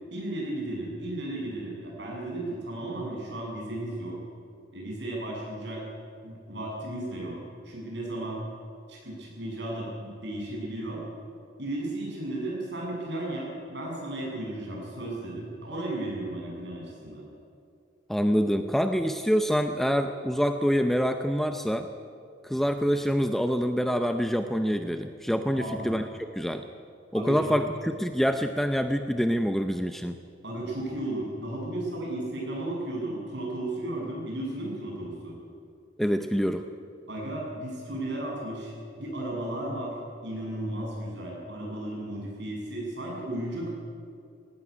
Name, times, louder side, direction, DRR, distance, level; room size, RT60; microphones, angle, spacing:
voice 1, 0.1-4.2 4.7-5.8 6.2-7.4 7.6-8.4 8.9-11.0 11.6-17.2 25.5-26.0 27.1-27.6 30.4-35.4 37.1-40.0 40.2-43.7, right 1 dB, 60° right, -3 dB, 7.8 m, -34 dB
voice 2, 18.1-21.9 22.4-26.0 26.3-26.6 27.1-30.2 36.0-36.6, equal, ahead, 7 dB, 0.6 m, -26 dB
18.0 x 17.5 x 9.9 m, 2.5 s
head